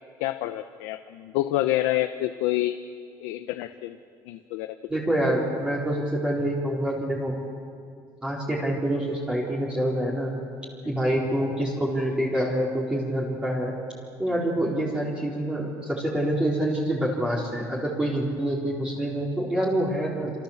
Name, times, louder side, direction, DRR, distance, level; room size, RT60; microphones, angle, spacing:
voice 1, 0.2-2.8 3.2-4.0 4.3-4.8, left 15 dB, 90° left, 8 dB, 1.0 m, -27 dB
voice 2, 4.9-7.4 8.2-10.3 10.8-13.7 14.2-20.3, right 1 dB, 10° right, -4 dB, 4.3 m, -26 dB
27.5 x 27.5 x 7.4 m, 2.2 s
cardioid pair, 140°, 9 cm